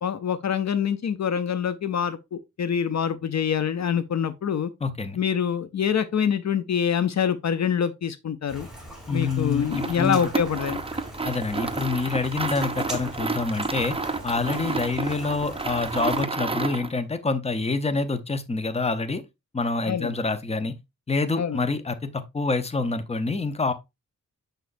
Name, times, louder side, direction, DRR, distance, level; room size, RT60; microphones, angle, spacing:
voice 1, 0.0-4.7 5.1-8.7 9.1-10.8 19.9-20.1 21.4-21.6, left 8 dB, 60° left, 0.6 m, -25 dB
voice 2, 4.8-5.2 9.1-10.2 11.2-13.9 14.2-19.2 19.5-20.7 21.1-23.7, left 3 dB, 20° left, 0.7 m, -27 dB
Rain, 8.5-16.2, equal, ahead, 2.9 m, -41 dB
sound 1, 9.6-17.0, right 3 dB, 20° right, 0.6 m, -30 dB
6.6 x 6.2 x 2.6 m
wide cardioid pair, 110°, 31 cm